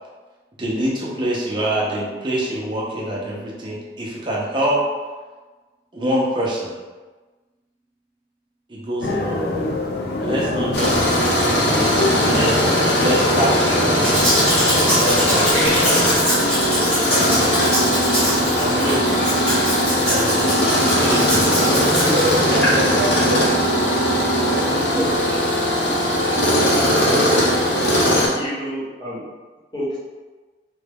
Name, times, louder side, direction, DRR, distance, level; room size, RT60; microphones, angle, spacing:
voice 1, 0.6-4.8 5.9-6.8 8.7-9.7 10.2-14.5 15.0-16.3 18.5-19.1 20.0-20.6 21.0-21.9, right 1 dB, 25° right, 0.7 m, -25 dB
sound 1, 9.0-25.3, left 2 dB, 60° left, 0.4 m, -27 dB
Tools, 10.7-28.3, equal, 85° left, 0.9 m, -19 dB
Domestic sounds home sounds, 14.0-22.8 23.3-23.4, equal, 5° left, 1.4 m, -23 dB
voice 2, 22.1-23.8 24.4-24.9, equal, 60° right, 0.4 m, -27 dB
voice 3, 24.9-25.4 25.8-26.2 26.6-26.7 28.3-29.2 29.7-30.0, equal, 25° left, 1.2 m, -28 dB
3.5 x 2.2 x 3.4 m
head